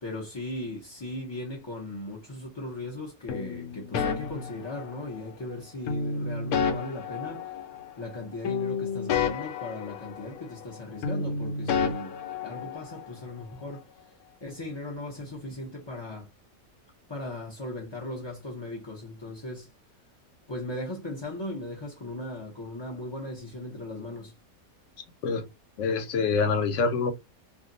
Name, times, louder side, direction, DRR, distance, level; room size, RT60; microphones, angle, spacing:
voice 1, 0.0-7.4 8.0-12.1 12.4-13.8 14.4-16.3 17.1-19.7 20.5-24.3, left 1 dB, 35° left, 0.4 m, -38 dB
sound 1, 3.3-5.3 5.9-8.2 8.4-10.8 11.0-13.1, left 5 dB, 90° left, 1.1 m, -31 dB
voice 2, 25.8-27.1, left 4 dB, 65° left, 1.0 m, -25 dB
2.6 x 2.2 x 3.8 m
omnidirectional pair, 1.5 m